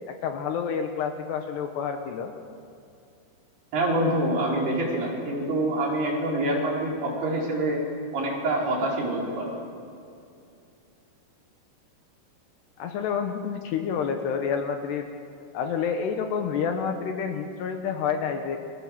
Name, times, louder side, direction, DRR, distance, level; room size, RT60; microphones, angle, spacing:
voice 1, 0.1-2.3 12.8-15.1 15.5-18.6, left 6 dB, 70° left, 5 dB, 3.0 m, -29 dB
voice 2, 3.7-7.8 8.1-9.6, right 1 dB, 60° right, -3 dB, 6.3 m, -26 dB
29.0 x 23.0 x 7.4 m, 2.5 s
omnidirectional pair, 5.4 m